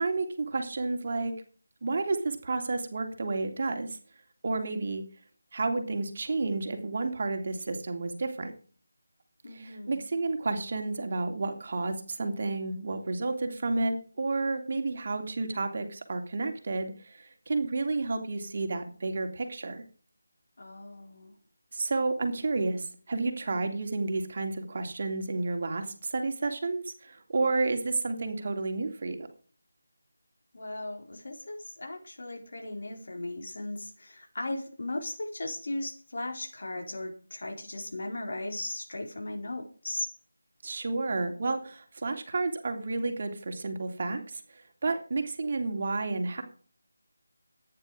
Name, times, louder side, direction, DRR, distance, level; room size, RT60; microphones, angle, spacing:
voice 1, 0.0-1.3 1.8-4.0 4.4-5.0 5.5-8.5 9.5-19.8 21.7-29.3 40.6-46.4, right 3 dB, 45° right, 5 dB, 3.1 m, -31 dB
voice 2, 9.4-10.1 20.6-21.3 30.5-40.1, left 2 dB, 55° left, 2 dB, 4.6 m, -37 dB
14.0 x 10.0 x 5.1 m, 0.42 s
figure-of-eight pair, 165°, 0 cm